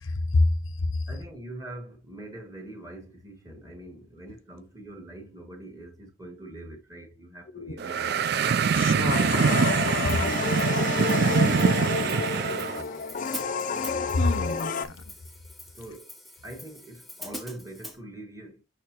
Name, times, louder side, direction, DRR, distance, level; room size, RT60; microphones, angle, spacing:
voice 1, 0.0-1.1 7.5-7.8 8.7-10.1 14.0-15.1, left 2 dB, 80° left, 0.7 m, -28 dB
voice 2, 1.1-8.3 10.4-13.1 14.3-14.7 15.7-16.1 16.4-18.6, right 1 dB, 15° right, 1.3 m, -43 dB
sound 1, 7.8-12.8, right 6 dB, 50° right, 0.3 m, -24 dB
sound 2, 9.1-14.9, left 5 dB, 40° left, 0.5 m, -29 dB
Hi-hat, 10.1-18.0, left 1 dB, ahead, 0.7 m, -45 dB
6.5 x 5.5 x 2.9 m
head